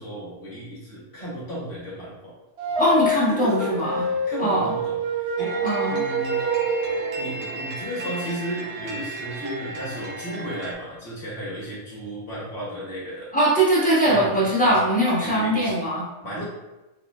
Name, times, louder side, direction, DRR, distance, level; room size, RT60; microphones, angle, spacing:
voice 1, 0.0-2.3 3.0-5.6 5.9-6.4 7.2-13.3 14.1-14.3 14.6-14.8 15.2-15.7 16.2-16.4, right 1 dB, 50° left, -7 dB, 1.3 m, -34 dB
sound 1, 2.6-7.6 9.4-9.6, right 1 dB, 65° right, 0.6 m, -27 dB
voice 2, 2.8-4.0 4.4-4.7 5.6-6.1 13.3-16.0, right 1 dB, 10° left, -9 dB, 0.6 m, -21 dB
sound 2, 5.4-10.7, right 3 dB, 85° right, 1.2 m, -33 dB
4.0 x 2.1 x 2.3 m, 1.0 s
omnidirectional pair, 1.6 m